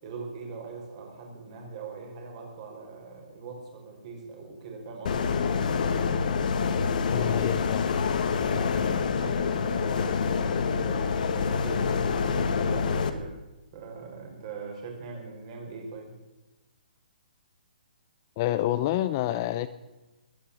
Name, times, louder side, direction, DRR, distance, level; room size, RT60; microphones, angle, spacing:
voice 1, 0.0-5.3 8.4-13.4 13.7-16.1, right 4 dB, 35° right, 1 dB, 4.9 m, -41 dB
sound 1, 5.1-13.1, left 5 dB, 55° left, 1.6 m, -26 dB
voice 2, 7.1-7.9 18.4-19.7, left 13 dB, 25° left, 12 dB, 0.5 m, -28 dB
21.0 x 9.2 x 7.1 m, 1.1 s
hypercardioid pair, 165°, 5 cm